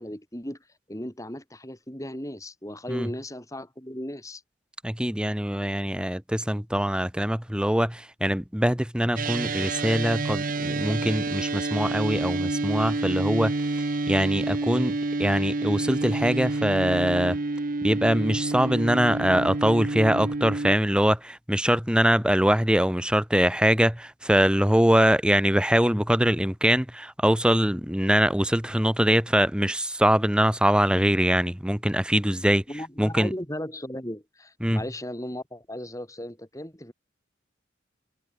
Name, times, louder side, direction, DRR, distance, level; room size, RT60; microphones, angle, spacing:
voice 1, 0.0-4.4 32.7-36.9, left 1 dB, 15° left, 6.6 m, -36 dB
voice 2, 4.8-17.4 17.8-32.6 33.0-33.3 34.6-34.8, equal, 5° right, 1.7 m, -23 dB
sound 1, 9.2-20.8, right 2 dB, 45° right, 0.8 m, -28 dB
head